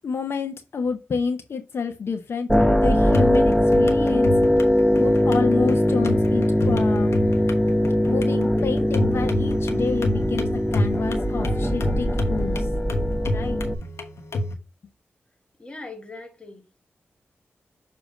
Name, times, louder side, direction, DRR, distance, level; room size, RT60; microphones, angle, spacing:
voice 1, 0.0-4.3 5.0-7.2 8.1-12.7 13.3-13.6, left 5 dB, 70° left, 0.8 m, -29 dB
sound 1, 2.5-13.7, left 1 dB, 5° left, 0.9 m, -21 dB
sound 2, 3.0-14.5, left 1 dB, 90° left, 1.1 m, -30 dB
voice 2, 15.6-16.8, left 3 dB, 20° left, 2.0 m, -40 dB
7.1 x 2.9 x 4.9 m
wide cardioid pair, 85°, 4 cm